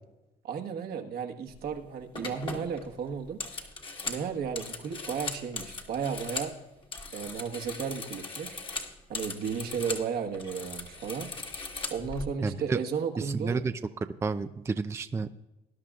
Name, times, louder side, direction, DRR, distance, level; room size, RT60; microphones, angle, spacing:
voice 1, 0.4-3.7 4.1-6.5 7.1-8.6 9.1-11.3 11.9-13.6, right 6 dB, 65° right, 4 dB, 1.4 m, -34 dB
sound 1, 1.5-1.7 2.1-6.5 6.8-10.1 10.3-12.2, left 3 dB, 30° left, 1.5 m, -39 dB
voice 2, 12.4-12.8 13.2-13.7 14.0-15.5, right 4 dB, 15° right, 9 dB, 0.4 m, -31 dB
19.5 x 11.0 x 2.4 m, 1.0 s
cardioid pair, 110°, 17 cm